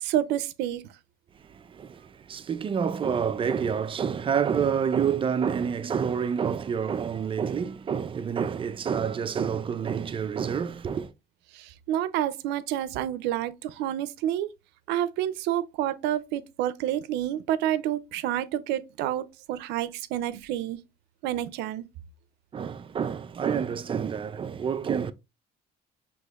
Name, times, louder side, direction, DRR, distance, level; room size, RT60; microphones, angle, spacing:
voice 1, 0.0-0.9 11.5-14.5 14.9-20.8 21.2-21.8, right 12 dB, 90° right, 0.5 m, -29 dB
voice 2, 1.5-11.1 22.5-25.1, right 7 dB, 30° right, 0.4 m, -28 dB
6.2 x 3.0 x 2.3 m
cardioid pair, 110°, 17 cm